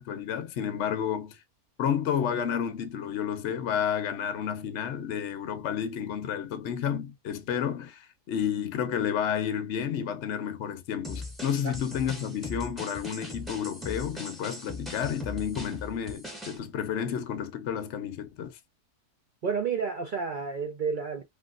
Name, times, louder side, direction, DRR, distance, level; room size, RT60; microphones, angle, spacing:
voice 1, 0.0-1.4 1.8-18.5, left 8 dB, 55° left, 0.9 m, -31 dB
sound 1, 11.0-16.6, left 2 dB, ahead, 0.7 m, -40 dB
voice 2, 19.4-21.2, right 5 dB, 55° right, 0.5 m, -30 dB
3.0 x 3.0 x 2.4 m
omnidirectional pair, 1.6 m